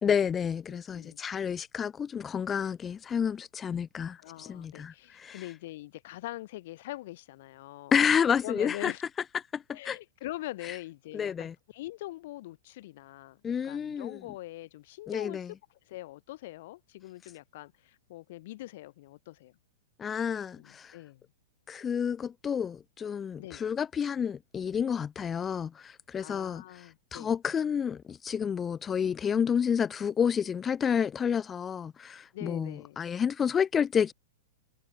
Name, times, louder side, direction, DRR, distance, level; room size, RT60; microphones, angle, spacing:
voice 1, 0.0-5.5 7.9-8.9 9.3-10.0 10.6-10.8 11.1-11.5 13.4-14.2 15.1-15.5 20.0-21.0 21.7-34.1, left 7 dB, 20° left, 1.3 m, -30 dB
voice 2, 0.7-1.2 4.2-7.9 8.4-9.0 9.7-15.4 15.9-19.5 20.6-21.2 23.4-23.6 26.2-27.3 32.3-33.0, left 17 dB, 55° left, 3.9 m, -43 dB
figure-of-eight pair, 105°, 0 cm